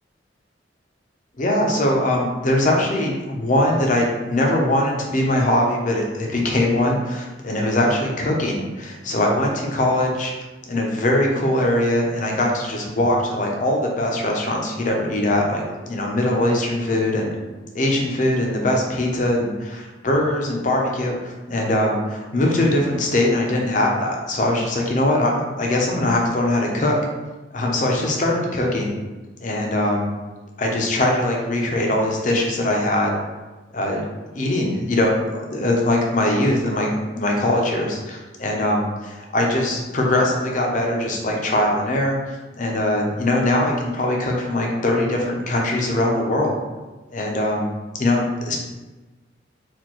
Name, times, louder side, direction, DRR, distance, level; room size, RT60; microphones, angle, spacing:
voice 1, 1.4-10.3 10.7-17.3 17.7-27.0 27.5-28.9 29.4-30.1 30.6-33.2 33.7-34.0 34.4-46.6 47.1-47.7 48.0-48.6, left 1 dB, 45° left, 0 dB, 0.6 m, -21 dB
4.3 x 2.5 x 2.9 m, 1.2 s
head